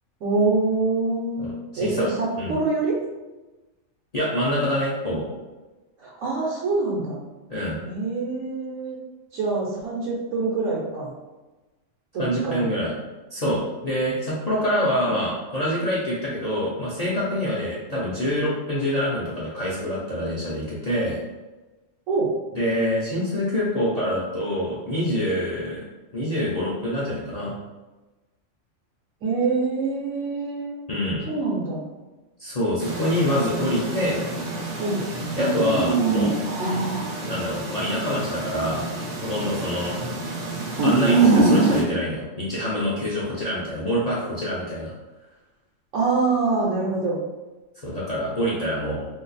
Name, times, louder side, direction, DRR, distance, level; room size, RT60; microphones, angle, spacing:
voice 1, 0.2-3.0 6.0-7.2 7.9-9.0 9.3-11.1 12.1-12.7 22.1-22.3 29.2-30.8 31.3-31.8 34.8-35.0 45.9-47.2, right 3 dB, 75° right, -5 dB, 1.0 m, -25 dB
voice 2, 1.4-2.1 2.4-2.6 4.1-5.3 7.5-7.8 12.2-12.9 13.3-21.2 22.5-25.8 26.1-27.5 30.9-31.3 32.4-34.2 35.4-36.4 37.2-38.9 39.2-40.0 40.8-44.9 47.8-49.1, equal, 45° left, -7 dB, 0.5 m, -26 dB
sound 1, 32.8-41.8, right 3 dB, 50° right, 0.7 m, -24 dB
2.6 x 2.4 x 3.9 m, 1.1 s
omnidirectional pair, 1.3 m